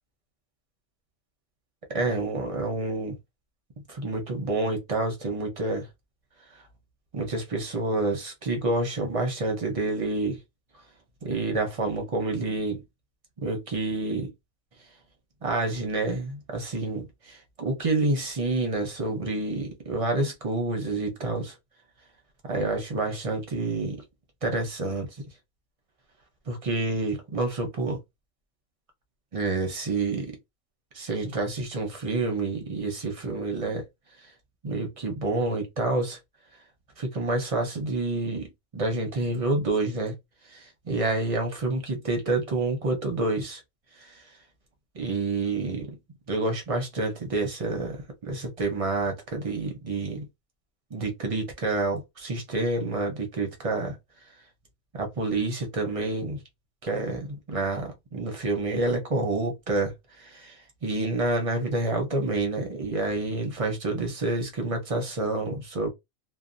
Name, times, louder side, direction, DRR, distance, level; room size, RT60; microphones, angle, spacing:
voice 1, 1.9-3.2 3.9-5.9 7.1-10.4 11.2-12.8 13.4-14.3 15.4-21.5 22.4-24.0 24.4-25.1 26.5-28.0 29.3-30.4 30.9-33.8 34.6-36.2 37.0-40.1 40.5-43.6 44.0-44.2 44.9-45.9 46.3-50.3 50.9-54.0 54.9-56.4 56.8-65.9, right 2 dB, 35° right, 0.5 m, -28 dB
2.6 x 2.1 x 2.6 m
omnidirectional pair, 1.5 m